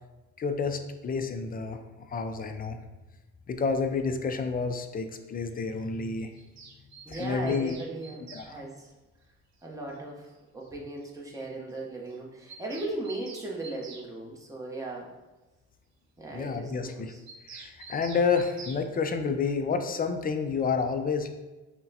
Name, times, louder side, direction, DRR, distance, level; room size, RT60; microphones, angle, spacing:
voice 1, 0.4-1.8 2.1-2.8 3.5-6.3 7.1-7.7 8.3-8.5 16.3-17.1 17.5-21.3, left 5 dB, 30° left, 7 dB, 0.4 m, -29 dB
Bird vocalization bird call bird song, 6.3-8.5 9.9-10.0 10.3-10.4 10.6-10.7 11.0-11.1 11.3-11.4 11.7-11.8 12.1-14.1 17.3-18.8, right 4 dB, 65° right, 0.6 m, -47 dB
voice 2, 7.0-8.9 9.6-15.1 16.2-17.2, right 2 dB, 10° right, -2 dB, 0.8 m, -38 dB
5.5 x 2.2 x 2.7 m, 1.1 s
cardioid pair, 90°, 30 cm